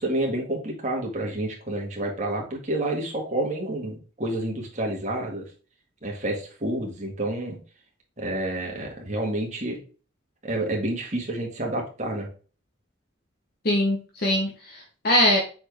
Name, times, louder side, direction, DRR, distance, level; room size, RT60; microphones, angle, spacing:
voice 1, 0.0-5.4 6.0-7.6 8.2-9.8 10.4-12.3, right 1 dB, 35° right, -1 dB, 2.0 m, -29 dB
voice 2, 13.6-15.4, left 1 dB, 50° left, 0 dB, 1.1 m, -22 dB
6.8 x 4.4 x 3.5 m, 0.37 s
head